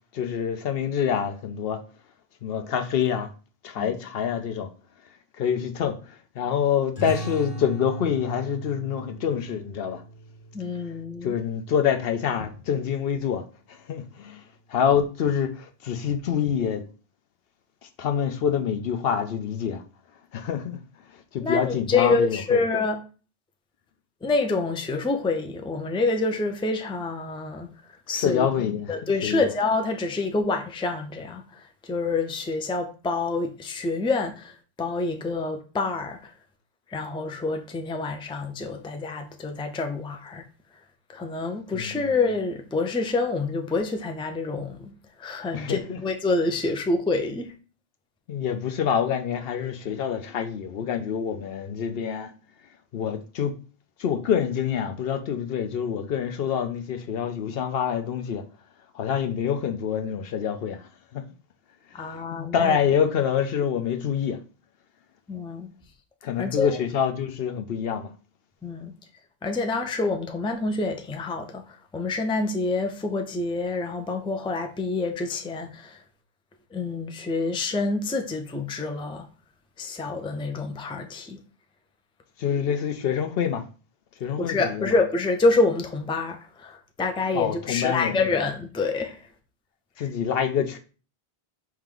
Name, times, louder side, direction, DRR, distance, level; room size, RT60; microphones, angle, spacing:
voice 1, 0.1-1.8 2.4-3.3 3.6-4.7 5.4-10.0 11.2-13.4 13.7-14.4 14.7-16.9 18.0-19.8 20.3-20.8 21.1-22.6 28.1-29.4 41.7-42.1 45.5-46.0 48.3-52.3 52.9-53.5 54.0-58.4 58.9-61.2 62.0-64.4 66.2-68.1 82.4-83.6 84.2-84.9 87.3-88.2 90.0-90.8, left 8 dB, 70° left, 0.8 m, -26 dB
sound 1, 7.0-12.2, right 2 dB, 50° left, 1.9 m, -38 dB
voice 2, 10.5-11.4 21.4-23.0 24.2-27.7 28.1-28.5 28.9-36.3 36.9-40.4 41.1-47.5 61.9-62.8 65.3-65.7 66.4-66.8 68.6-68.9 69.4-71.6 71.9-76.0 76.7-79.3 79.8-81.4 84.4-89.2 90.0-90.1, left 3 dB, 10° left, 0.4 m, -27 dB
4.5 x 3.1 x 3.7 m
omnidirectional pair, 1.0 m